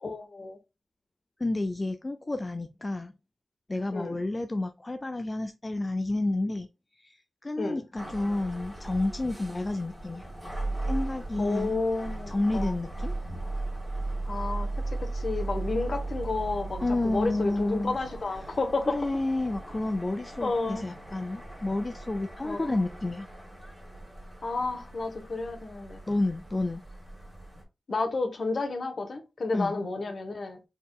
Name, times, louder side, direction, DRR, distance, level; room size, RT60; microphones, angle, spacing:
voice 1, 0.0-0.6 3.9-4.2 7.6-7.8 11.4-12.8 14.3-19.0 20.4-20.9 22.4-22.7 24.4-26.0 27.9-30.6, left 3 dB, 50° left, 1.0 m, -31 dB
voice 2, 1.4-3.1 3.7-6.7 7.0-7.2 7.4-10.3 10.9-11.8 12.3-13.1 16.8-18.0 18.4-18.6 18.9-23.3 26.1-26.8 29.5-29.8, left 2 dB, 25° left, 0.3 m, -30 dB
sound 1, 8.0-27.6, right 2 dB, ahead, 1.8 m, -37 dB
4.1 x 3.6 x 2.3 m
wide cardioid pair, 115°, 0 cm